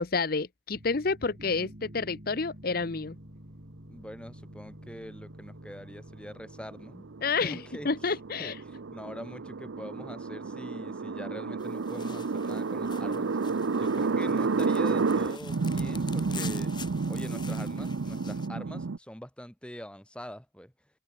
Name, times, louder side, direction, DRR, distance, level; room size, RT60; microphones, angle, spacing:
voice 1, 0.0-3.2 7.2-8.6, left 4 dB, 50° left, 0.8 m, -29 dB
sound 1, 0.7-10.6, equal, 50° right, 7.8 m, -50 dB
voice 2, 3.9-7.1 7.4-13.3 13.7-16.7 17.1-20.7, equal, 5° left, 6.9 m, -44 dB
sound 2, 6.4-19.0, right 4 dB, 90° right, 0.6 m, -31 dB
sound 3, 11.6-18.5, left 6 dB, 25° left, 5.4 m, -47 dB
head